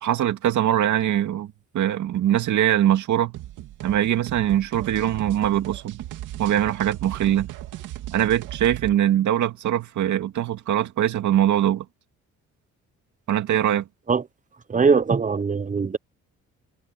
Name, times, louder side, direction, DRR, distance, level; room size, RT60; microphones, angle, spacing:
voice 1, 0.0-3.3 3.8-6.0 6.4-7.5 8.1-11.9 13.3-13.8, right 11 dB, 75° right, 2.4 m, -22 dB
sound 1, 3.3-9.0, right 14 dB, 90° right, 2.6 m, -37 dB
voice 2, 14.7-16.0, right 5 dB, 25° right, 1.0 m, -21 dB
cardioid pair, 90°, 30 cm